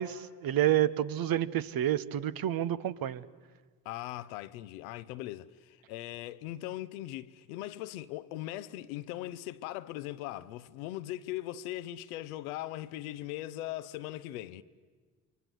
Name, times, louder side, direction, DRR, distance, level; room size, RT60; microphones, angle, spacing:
voice 1, 0.0-3.2, right 12 dB, 55° right, 1.0 m, -29 dB
voice 2, 3.8-14.6, left 15 dB, 85° left, 0.8 m, -40 dB
29.0 x 23.0 x 8.0 m
hypercardioid pair, 50°, 42 cm